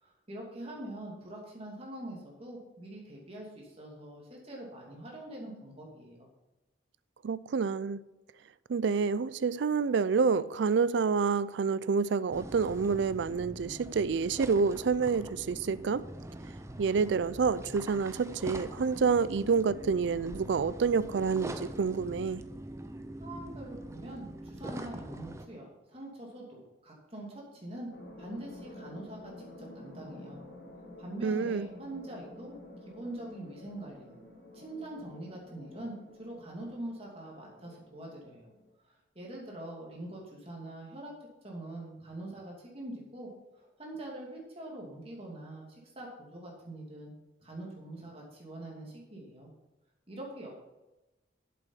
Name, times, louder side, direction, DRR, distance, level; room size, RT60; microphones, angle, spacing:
voice 1, 0.0-6.3 23.2-27.9 28.2-30.4 31.0-32.6 32.9-34.1 34.5-38.5 38.8-41.1 41.4-43.3 43.6-47.1 47.4-49.5 50.1-50.6, right 1 dB, 30° right, 2.6 m, -44 dB
voice 2, 7.2-8.0 8.7-16.1 16.8-22.4 31.2-31.7, right 5 dB, 75° right, 0.4 m, -28 dB
sound 1, 12.3-25.4, right 1 dB, 15° right, 0.5 m, -43 dB
sound 2, 27.9-38.7, left 1 dB, 55° left, 2.3 m, -50 dB
8.1 x 7.7 x 5.5 m
head